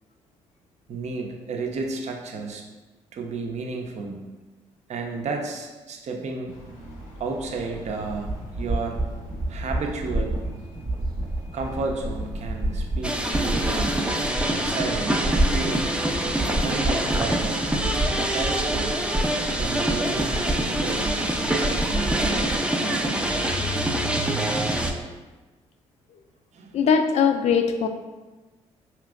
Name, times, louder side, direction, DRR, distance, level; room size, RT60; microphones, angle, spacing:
voice 1, 0.9-2.6 3.1-4.2 4.9-6.5 7.2-8.3 8.6-9.0 9.5-10.4 11.5-14.1 14.5-15.9 16.5-18.9 19.5-23.4 26.5-26.8, right 4 dB, 50° right, 2 dB, 0.6 m, -32 dB
sound 1, 6.5-24.9, equal, 80° left, 0.8 m, -40 dB
sound 2, 8.0-22.5, right 1 dB, 25° right, 0.9 m, -29 dB
sound 3, 13.0-24.9, right 1 dB, 5° right, 0.5 m, -25 dB
voice 2, 26.7-27.9, left 6 dB, 50° left, 7 dB, 0.4 m, -20 dB
4.8 x 2.9 x 2.4 m, 1.2 s
hypercardioid pair, 45°, 15 cm